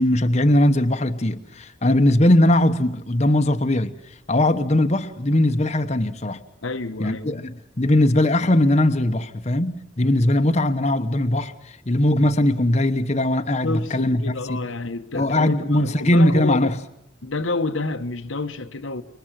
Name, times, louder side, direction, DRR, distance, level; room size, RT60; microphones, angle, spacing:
voice 1, 0.0-3.9 4.3-6.4 7.0-14.2 14.5-14.6 15.1-16.7, left 1 dB, 35° left, 1.0 m, -20 dB
voice 2, 6.6-7.5 13.6-16.7 17.2-19.0, left 2 dB, 80° left, 1.2 m, -29 dB
27.0 x 23.5 x 7.6 m
head